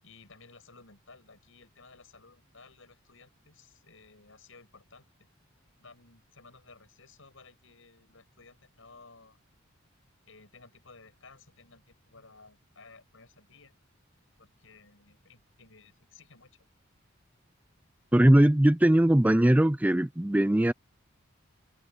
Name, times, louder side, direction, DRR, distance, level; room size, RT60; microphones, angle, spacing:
voice 1, 0.0-5.3 5.8-9.4 10.3-13.8 14.4-16.7, left 4 dB, 75° left, 6.9 m, -56 dB
voice 2, 18.1-20.7, right 1 dB, 5° right, 0.4 m, -20 dB
head